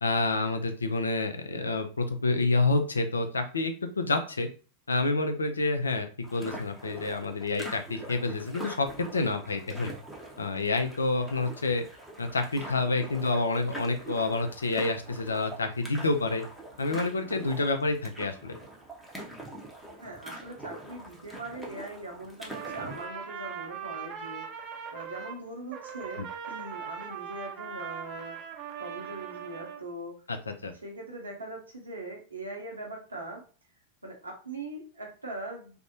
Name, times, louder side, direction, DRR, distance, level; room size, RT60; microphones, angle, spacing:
voice 1, 0.0-4.5 4.9-8.9 9.1-9.9 10.4-11.8 12.2-16.4 16.8-18.6 30.3-30.7, left 3 dB, 75° left, 7 dB, 0.3 m, -28 dB
sound 1, 6.2-23.1, right 1 dB, ahead, 0.7 m, -44 dB
voice 2, 20.0-24.5 24.9-28.4 28.8-30.1 30.8-33.4 34.0-35.8, right 2 dB, 80° right, 0 dB, 0.7 m, -41 dB
Trumpet, 22.4-25.4 25.7-29.8, right 7 dB, 35° right, 0.5 m, -40 dB
2.5 x 2.0 x 2.7 m, 0.37 s
figure-of-eight pair, 90°, 0 cm